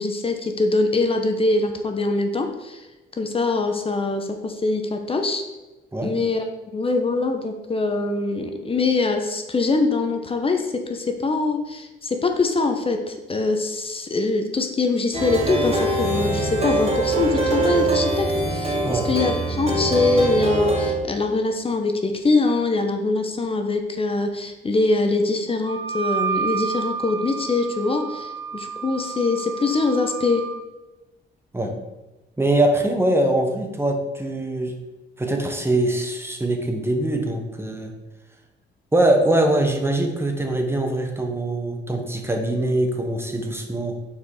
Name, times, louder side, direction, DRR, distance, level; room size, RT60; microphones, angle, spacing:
voice 1, 0.0-2.8 3.2-5.4 6.0-30.5, left 3 dB, 30° left, 5 dB, 0.9 m, -23 dB
Plucked string instrument, 15.1-20.9, right 2 dB, 30° right, 2.4 m, -23 dB
Wind instrument woodwind instrument, 25.7-30.6, right 6 dB, 85° right, 0.9 m, -30 dB
voice 2, 32.4-34.8 35.2-37.9 38.9-44.0, right 1 dB, 10° right, 3 dB, 1.2 m, -22 dB
6.0 x 4.7 x 4.9 m, 1.1 s
cardioid pair, 90°, 20 cm